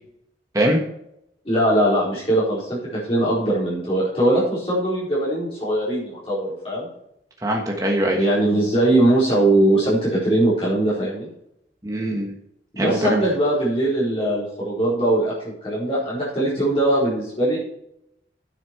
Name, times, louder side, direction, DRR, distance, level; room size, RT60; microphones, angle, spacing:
voice 1, 1.4-6.9 8.1-11.3 12.7-17.6, right 1 dB, 30° left, -8 dB, 4.4 m, -21 dB
voice 2, 7.4-8.2 11.8-12.3 12.8-13.2, right 1 dB, 20° right, 0 dB, 1.2 m, -22 dB
9.8 x 8.3 x 4.6 m, 0.78 s
head